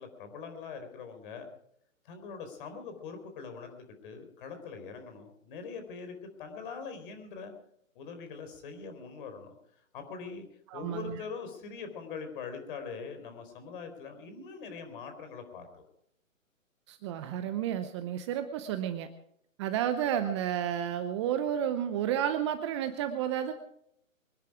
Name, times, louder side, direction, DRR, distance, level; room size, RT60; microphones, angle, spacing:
voice 1, 0.0-1.5 2.0-7.5 7.9-9.6 9.9-10.5 10.7-15.9, left 5 dB, 40° left, 6 dB, 4.2 m, -42 dB
voice 2, 10.7-11.2 16.9-19.1 19.6-23.5, right 10 dB, 20° right, 9 dB, 0.7 m, -31 dB
24.0 x 10.5 x 4.8 m, 0.73 s
hypercardioid pair, 140°, 41 cm